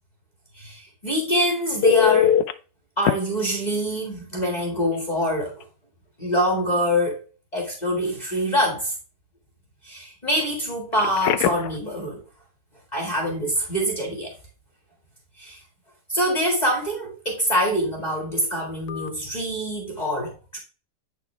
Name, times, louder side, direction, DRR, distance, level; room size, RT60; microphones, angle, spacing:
voice 1, 0.5-2.4 3.0-5.6 6.2-7.2 7.5-8.9 9.8-12.2 12.9-14.4 15.4-15.6 16.1-20.6, equal, 25° left, 2.0 m, -25 dB
Telephone, 1.8-2.5 3.1-3.2 4.9-5.1 5.5-5.6 10.9-11.8 18.9-19.1, left 10 dB, 70° left, 1.1 m, -21 dB
9.3 x 4.2 x 3.3 m
omnidirectional pair, 1.8 m